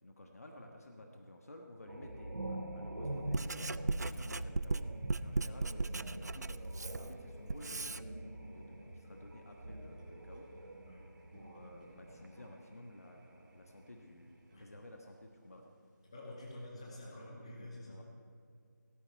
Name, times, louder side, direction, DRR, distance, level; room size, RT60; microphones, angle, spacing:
voice 1, 0.0-10.7 11.3-15.7 17.8-18.0, left 1 dB, 50° left, 2 dB, 1.4 m, -54 dB
sound 1, 1.9-12.7 13.0-14.2, right 1 dB, 85° right, 2.5 m, -45 dB
Writing, 3.0-8.0, right 3 dB, 60° right, 0.4 m, -37 dB
sound 2, 5.0-16.2, right 2 dB, 25° right, 4.4 m, -61 dB
voice 2, 16.0-18.0, left 1 dB, 20° left, -3 dB, 1.9 m, -48 dB
17.0 x 14.0 x 4.6 m, 2.3 s
figure-of-eight pair, 175°, 10 cm